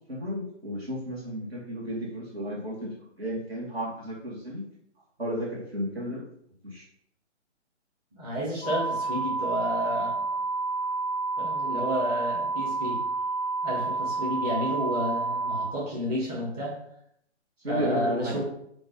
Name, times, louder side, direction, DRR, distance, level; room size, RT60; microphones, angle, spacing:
voice 1, 0.1-4.6 5.2-6.2 6.6-6.8 17.6-18.4, equal, 55° right, -4 dB, 2.7 m, -33 dB
voice 2, 8.1-10.2 11.4-13.0 13.6-16.8 17.7-18.4, equal, 35° right, -5 dB, 2.6 m, -31 dB
sound 1, 8.6-15.7, right 3 dB, ahead, 0.5 m, -29 dB
8.9 x 3.3 x 5.2 m, 0.72 s
figure-of-eight pair, 135°, 36 cm